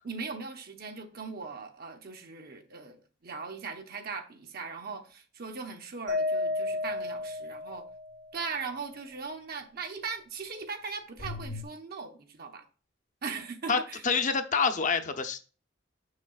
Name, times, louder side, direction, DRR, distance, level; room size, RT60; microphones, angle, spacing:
voice 1, 0.0-7.9 8.3-12.7 13.2-14.0, right 4 dB, 55° right, 0.8 m, -39 dB
Mallet percussion, 6.1-8.3, left 2 dB, 75° right, 1.6 m, -32 dB
sound 1, 6.5-6.7 11.2-11.6, left 3 dB, 90° left, 1.1 m, -38 dB
voice 2, 13.7-15.4, left 5 dB, 40° left, 0.7 m, -27 dB
6.5 x 6.4 x 2.4 m
head